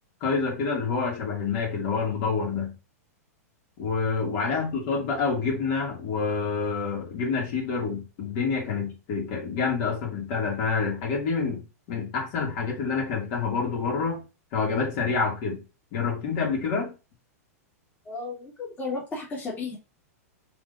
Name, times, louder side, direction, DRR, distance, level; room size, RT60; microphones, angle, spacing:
voice 1, 0.2-2.7 3.8-14.2 14.5-15.6 15.9-16.9, left 5 dB, 50° left, 2.6 m, -27 dB
voice 2, 18.1-19.8, left 3 dB, 20° left, 2.1 m, -34 dB
4.8 x 3.8 x 2.7 m
hypercardioid pair, 125°, 9 cm